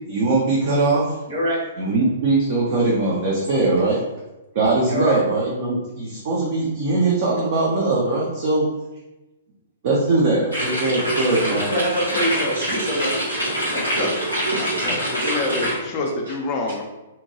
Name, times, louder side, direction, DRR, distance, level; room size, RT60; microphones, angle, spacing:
voice 1, 0.1-1.1 1.8-4.0 4.5-8.7 9.8-11.7, right 2 dB, 45° right, -4 dB, 0.5 m, -21 dB
voice 2, 1.3-1.6 4.9-5.2 11.2-13.1 13.7-14.1 15.2-15.3, equal, 65° right, -6 dB, 1.5 m, -25 dB
sound 1, 10.5-15.7, right 1 dB, 90° right, 1.4 m, -25 dB
voice 3, 14.8-16.8, left 3 dB, 30° left, 1 dB, 0.4 m, -27 dB
2.8 x 2.2 x 2.8 m, 1.0 s
figure-of-eight pair, 115°, 0 cm